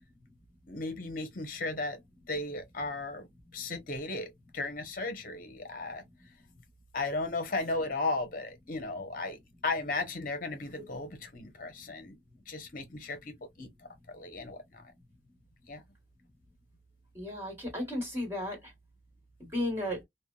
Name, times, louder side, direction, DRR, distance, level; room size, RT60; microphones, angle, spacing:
voice 1, 0.7-2.0 2.3-6.0 6.9-12.2 12.5-13.7 14.1-14.9 15.7-15.8, left 3 dB, 45° left, 0.8 m, -35 dB
voice 2, 17.1-18.7 19.5-20.0, left 1 dB, 15° right, 1.6 m, -34 dB
3.2 x 2.2 x 2.3 m
head